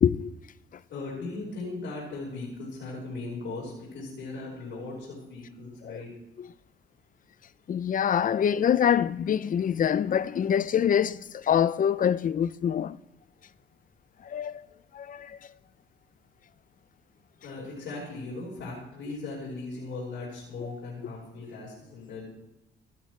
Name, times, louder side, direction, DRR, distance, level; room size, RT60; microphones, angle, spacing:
voice 1, 0.0-0.3 5.8-6.0 6.4-6.5 7.7-13.0 14.2-14.5 14.9-15.4 20.6-20.7, left 9 dB, 45° left, 0.5 m, -25 dB
voice 2, 0.9-6.1 17.4-22.2, left 3 dB, 70° left, 4.8 m, -38 dB
15.5 x 11.5 x 3.3 m
cardioid pair, 90°, 20 cm